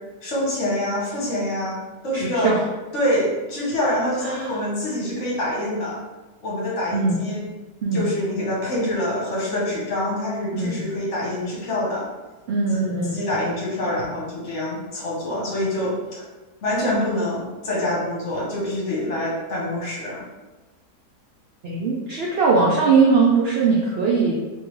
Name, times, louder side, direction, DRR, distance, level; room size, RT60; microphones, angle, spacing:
voice 1, 0.2-2.5 2.9-6.0 6.4-7.4 7.9-12.1 13.1-16.2 16.6-20.2, left 1 dB, 50° left, -4 dB, 1.3 m, -25 dB
voice 2, 2.1-2.6 4.2-4.5 6.9-7.2 7.8-8.1 10.5-10.8 12.5-13.2 21.6-24.3, right 4 dB, 80° right, -3 dB, 0.5 m, -20 dB
3.6 x 3.0 x 3.1 m, 1.2 s
omnidirectional pair, 1.7 m